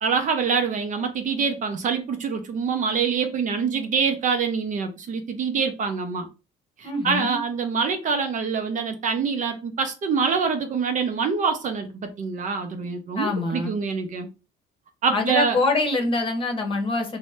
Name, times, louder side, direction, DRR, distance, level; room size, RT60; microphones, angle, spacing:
voice 1, 0.0-6.3 6.8-14.3 15.0-15.6, right 5 dB, 45° right, 0.6 m, -25 dB
voice 2, 6.8-7.4 13.2-13.8 15.1-17.2, left 2 dB, 30° left, 0.9 m, -25 dB
2.7 x 2.1 x 3.2 m
cardioid pair, 110°, 18 cm